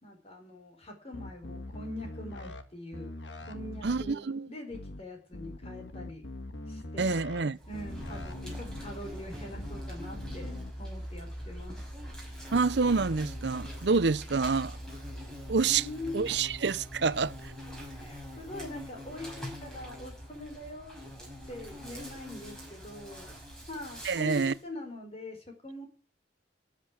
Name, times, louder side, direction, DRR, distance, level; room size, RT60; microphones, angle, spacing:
voice 1, 0.0-3.1 3.4-6.2 6.7-7.2 7.7-10.5 10.8-11.8 15.6-16.3 17.0-17.1 17.9-21.0 21.5-23.3 23.7-25.9, left 1 dB, 35° left, 4.5 m, -43 dB
sound 1, 1.1-2.6 2.9-4.1 4.7-5.0 5.3-7.4 7.7-8.9 9.5-9.8 10.1-10.7, left 1 dB, 80° left, 1.7 m, -42 dB
voice 2, 3.8-4.5 7.0-7.6 12.5-14.8 15.5-15.9 16.1-17.3 24.0-24.5, right 4 dB, 65° right, 0.7 m, -27 dB
Insect, 7.6-24.6, equal, 5° left, 5.6 m, -43 dB
13.0 x 7.7 x 8.5 m
head